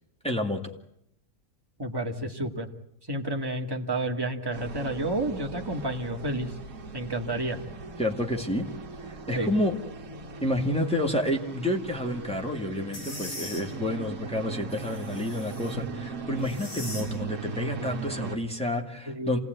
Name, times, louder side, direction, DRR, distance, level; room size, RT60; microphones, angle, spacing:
voice 1, 0.2-0.6 8.0-8.7 9.3-9.8 10.4-19.4, left 1 dB, 5° left, 1 dB, 2.2 m, -29 dB
voice 2, 1.8-2.7 3.1-6.5 6.9-7.6 9.3-9.5 19.1-19.4, right 1 dB, 15° right, 2 dB, 1.9 m, -30 dB
sound 1, 4.5-13.7, left 1 dB, 90° left, 7.2 m, -47 dB
sound 2, 4.5-18.4, right 5 dB, 55° right, 1.9 m, -39 dB
sound 3, 12.9-13.6 14.7-15.9 16.4-17.1, left 1 dB, 65° left, 6.4 m, -40 dB
27.0 x 18.0 x 9.3 m, 0.76 s
omnidirectional pair, 1.8 m